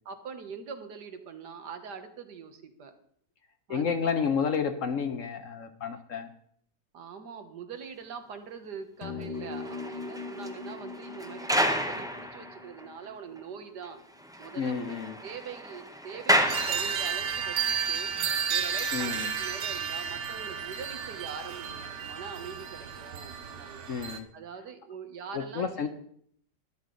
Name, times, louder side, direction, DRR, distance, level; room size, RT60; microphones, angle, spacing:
voice 1, 0.1-2.9 3.7-3.9 6.9-14.0 14.4-15.0 15.2-18.1 18.5-23.9 24.3-25.9, right 6 dB, 75° right, 8 dB, 1.7 m, -43 dB
voice 2, 3.7-6.3 14.5-15.2 18.9-19.3 23.9-24.3 25.3-25.9, left 6 dB, 55° left, 8 dB, 1.0 m, -30 dB
sound 1, 9.0-13.6, left 4 dB, 75° left, 1.6 m, -41 dB
sound 2, 9.3-13.0 13.4-13.5 13.8-13.9 14.2-17.5 18.1-18.3, equal, 5° right, 0.5 m, -31 dB
sound 3, 16.5-24.2, right 7 dB, 50° right, 1.0 m, -32 dB
13.0 x 11.0 x 3.8 m, 0.64 s
omnidirectional pair, 1.8 m